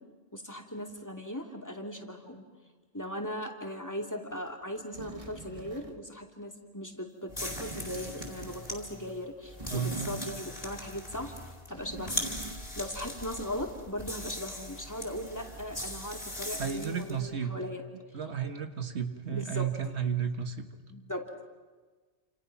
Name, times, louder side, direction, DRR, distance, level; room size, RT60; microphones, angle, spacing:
voice 1, 0.3-2.4 2.9-11.3 11.7-12.3 12.7-17.8 19.3-19.7 20.9-21.2, equal, 15° left, 2 dB, 2.6 m, -38 dB
sound 1, 4.5-4.6 4.9-6.1 7.4-8.8 9.6-10.7 11.1-12.8 13.0-13.1, right 2 dB, 30° right, 1.5 m, -44 dB
sound 2, 7.3-17.2, left 1 dB, 30° left, 4.2 m, -40 dB
voice 2, 9.7-10.2 16.6-17.6 18.1-20.7, right 7 dB, 75° right, 6 dB, 1.8 m, -33 dB
29.0 x 27.5 x 6.0 m, 1.4 s
omnidirectional pair, 1.1 m